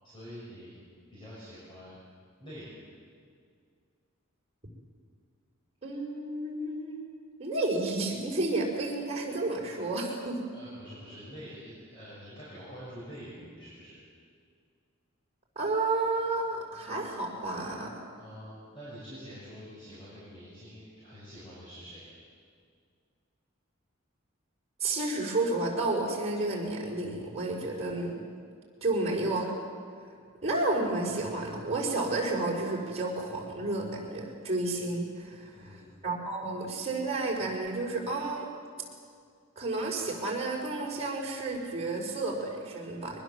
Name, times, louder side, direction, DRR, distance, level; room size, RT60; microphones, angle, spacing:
voice 1, 0.0-0.7 1.1-2.0 2.4-2.9 10.5-14.0 18.2-22.2 28.8-28.9 35.5-36.0, equal, 25° left, -9 dB, 6.4 m, -46 dB
voice 2, 5.8-7.0 7.4-10.4 15.6-17.9 24.8-28.2 28.8-29.5 30.4-38.5 39.6-43.2, right 2 dB, 30° right, -2 dB, 5.4 m, -31 dB
23.0 x 20.0 x 7.6 m, 2.2 s
head